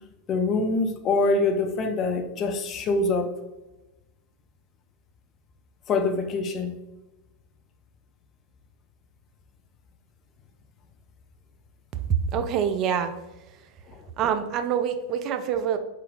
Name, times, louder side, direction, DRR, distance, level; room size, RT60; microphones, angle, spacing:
voice 1, 0.3-3.3 5.9-6.7 13.9-14.0, left 3 dB, 30° left, 6 dB, 0.5 m, -24 dB
voice 2, 12.1-13.1 13.5-13.6 14.2-15.8, right 8 dB, 35° right, 8 dB, 0.3 m, -25 dB
4.2 x 3.8 x 2.5 m, 1.0 s
figure-of-eight pair, 90°, 0 cm